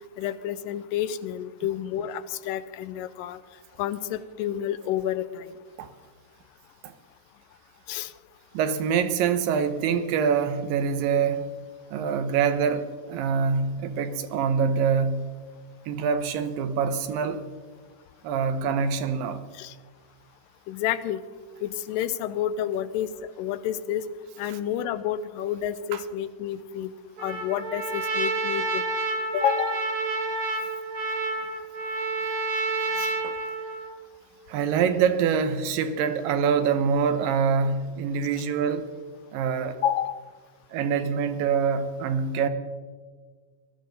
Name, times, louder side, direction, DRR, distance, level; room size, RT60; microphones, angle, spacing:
voice 1, 0.2-3.4 3.8-5.5 7.9-8.1 19.6-19.7 20.7-21.2 21.6-23.1 23.4-24.0 24.4-26.9 27.2-28.8 29.3-29.8 33.0-33.1 39.8-40.2, left 10 dB, 80° left, 2.2 m, -29 dB
voice 2, 8.5-11.5 11.9-15.3 15.9-17.4 18.2-19.4 24.5-24.6 25.9-26.0 33.2-33.4 34.5-38.9 39.3-39.8 40.7-42.5, right 6 dB, 85° right, 2.6 m, -25 dB
Trumpet, 27.2-34.0, right 3 dB, 55° right, 1.7 m, -29 dB
19.0 x 13.0 x 3.9 m
omnidirectional pair, 3.9 m